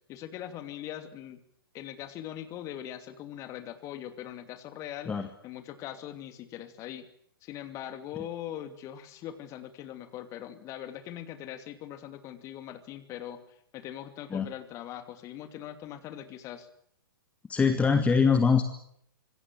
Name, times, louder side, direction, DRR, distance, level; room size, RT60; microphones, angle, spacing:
voice 1, 0.1-1.4 1.7-5.2 5.4-7.1 7.4-16.7, left 11 dB, 25° left, 9 dB, 2.7 m, -41 dB
voice 2, 17.5-18.6, left 5 dB, 10° left, 8 dB, 1.7 m, -23 dB
26.0 x 22.0 x 7.6 m, 0.70 s
figure-of-eight pair, 110°, 12 cm